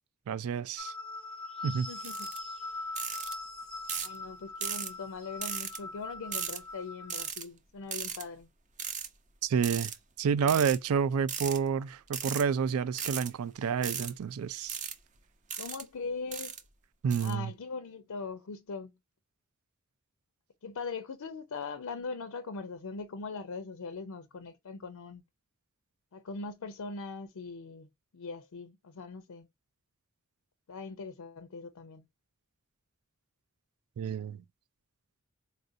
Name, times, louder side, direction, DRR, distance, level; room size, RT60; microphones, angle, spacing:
voice 1, 0.3-0.9 1.6-1.9 9.4-9.9 10.2-14.8 17.0-17.5 34.0-34.4, right 6 dB, 70° right, 0.3 m, -29 dB
sound 1, 0.8-7.3, left 2 dB, 5° left, 0.7 m, -42 dB
voice 2, 1.9-2.3 4.0-8.5 15.6-16.6 17.2-18.9 20.6-25.2 26.1-27.9 28.1-29.5 30.7-32.1, left 4 dB, 85° left, 0.5 m, -41 dB
sound 2, 2.0-2.4 3.0-3.3 3.9-4.2 4.6-4.9 5.4-5.8 6.3-6.6 7.1-7.4 7.9-8.2 8.8-9.1 9.6-10.0 10.5-10.8 11.3-11.6 12.1-12.4 12.9-13.3 13.8-14.1 14.7-14.9 15.5-15.8 16.3-16.6 17.1-17.3, right 7 dB, 35° right, 0.6 m, -36 dB
4.4 x 2.5 x 2.5 m
head